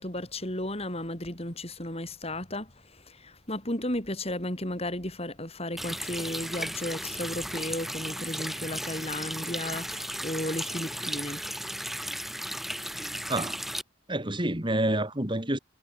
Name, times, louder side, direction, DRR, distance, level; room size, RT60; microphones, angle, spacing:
voice 1, 0.0-11.4, left 1 dB, 30° left, 5.4 m, -34 dB
Water tap faucet, 5.8-13.8, equal, ahead, 1.9 m, -35 dB
voice 2, 14.1-15.6, right 1 dB, 25° right, 3.0 m, -28 dB
head